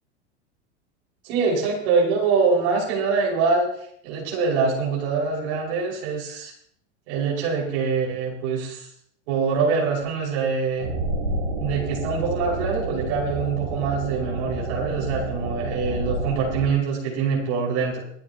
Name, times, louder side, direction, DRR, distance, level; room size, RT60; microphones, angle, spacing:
voice 1, 1.2-3.7 4.0-6.5 7.1-8.9 9.3-10.9 11.6-18.0, right 5 dB, 65° right, -3 dB, 5.7 m, -24 dB
sound 1, 10.8-16.7, right 2 dB, 85° right, 7.2 m, -29 dB
27.5 x 9.5 x 3.0 m, 0.67 s
hypercardioid pair, 95°, 35 cm